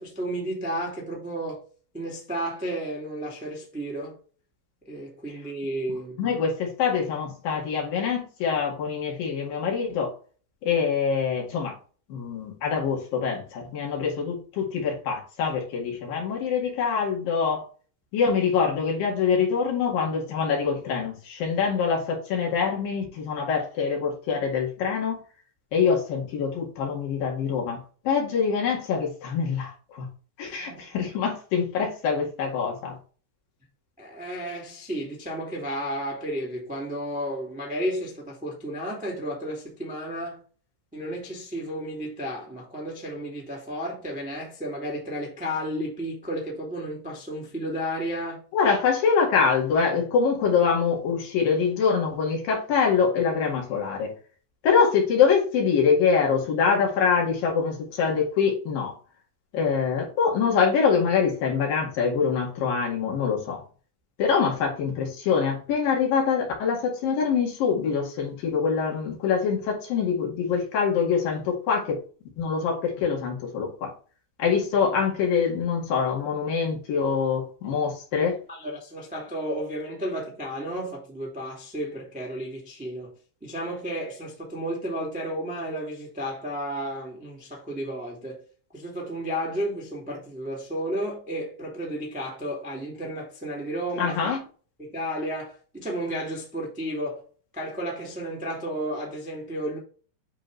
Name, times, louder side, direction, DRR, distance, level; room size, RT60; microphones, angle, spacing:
voice 1, 0.0-1.6 1.9-4.2 4.9-6.2 30.6-30.9 34.0-40.4 40.9-48.4 78.5-83.1 83.4-88.4 88.7-94.2 94.8-97.2 97.5-99.8, equal, 10° right, 0.3 m, -32 dB
voice 2, 6.2-10.1 10.6-11.7 12.1-17.6 18.1-25.2 25.7-30.1 30.4-33.0 48.5-54.1 54.6-59.0 59.5-63.6 64.2-72.0 72.4-73.9 74.4-78.4 94.0-94.4, left 6 dB, 55° left, 3.4 m, -24 dB
10.5 x 3.7 x 3.3 m
omnidirectional pair, 5.2 m